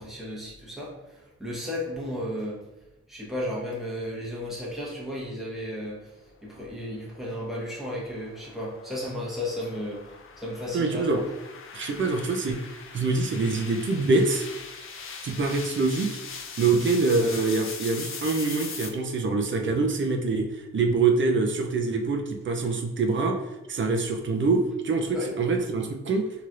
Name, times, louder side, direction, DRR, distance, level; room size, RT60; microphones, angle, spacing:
voice 1, 0.0-2.6 3.1-6.0 6.4-10.0 10.4-11.2 25.1-25.3, left 1 dB, ahead, -6 dB, 1.0 m, -34 dB
sound 1, 6.8-18.9, left 5 dB, 45° left, 0.4 m, -41 dB
voice 2, 10.7-11.2 11.7-14.5 15.2-16.2 16.6-23.4 23.7-26.3, right 3 dB, 45° right, 3 dB, 0.5 m, -25 dB
3.1 x 2.8 x 2.4 m, 0.96 s
cardioid pair, 95°, 29 cm